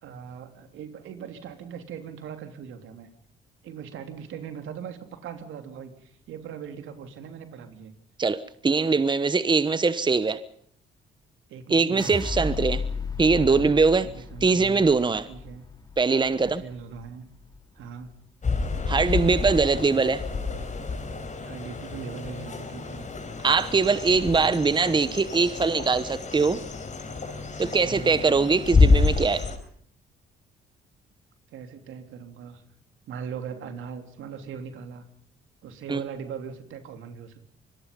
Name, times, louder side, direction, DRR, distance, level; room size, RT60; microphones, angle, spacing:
voice 1, 0.0-3.1 3.6-7.9 11.5-12.3 14.0-14.9 15.3-15.6 16.5-17.3 17.8-18.2 21.4-23.1 27.8-28.2 31.5-32.6 33.1-35.0 35.6-37.4, right 7 dB, 80° right, 3.3 m, -40 dB
voice 2, 8.2-10.4 11.7-12.8 13.2-14.1 14.4-15.3 16.0-16.6 18.9-20.2 23.4-26.6 27.6-29.4 35.9-36.0, right 4 dB, 25° right, 1.2 m, -22 dB
sound 1, 12.0-18.1 18.5-19.1, left 4 dB, 20° left, 4.1 m, -35 dB
sound 2, 18.4-29.5, left 4 dB, 40° left, 4.8 m, -28 dB
26.0 x 22.0 x 5.4 m
cardioid pair, 90°, 20 cm